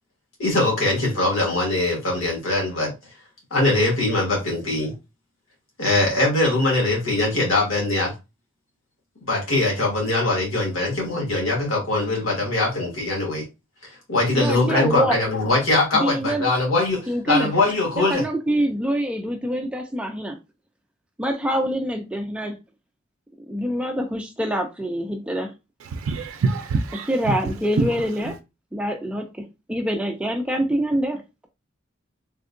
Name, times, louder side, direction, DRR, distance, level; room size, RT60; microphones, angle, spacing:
voice 1, 0.4-2.9 3.5-4.9 5.8-8.1 9.3-13.4 13.8-18.2, left 2 dB, 85° left, 1.4 m, -22 dB
voice 2, 14.3-15.2 15.9-16.5 17.1-17.5 18.0-20.3 21.2-22.6 23.5-25.5 27.1-28.3 28.7-31.5, equal, 5° right, 0.3 m, -25 dB
voice 3, 25.8-27.4 27.8-28.4, right 4 dB, 90° right, 0.4 m, -25 dB
3.5 x 2.2 x 2.5 m
head